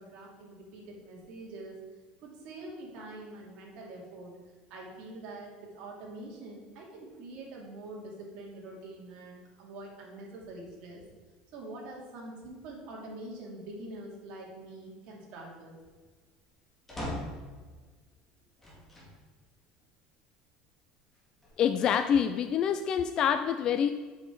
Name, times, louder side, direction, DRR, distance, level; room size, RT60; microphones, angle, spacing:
voice 1, 0.0-1.8 2.2-4.3 4.7-11.1 11.5-15.7, right 2 dB, 55° right, -2 dB, 2.5 m, -45 dB
sound 1, 16.9-17.5 18.6-19.2 19.8-19.9 21.1-21.9, left 1 dB, 10° left, 2.1 m, -40 dB
voice 2, 21.6-23.9, left 8 dB, 35° left, 8 dB, 0.3 m, -26 dB
7.5 x 6.5 x 4.7 m, 1.4 s
cardioid pair, 160°, 2 cm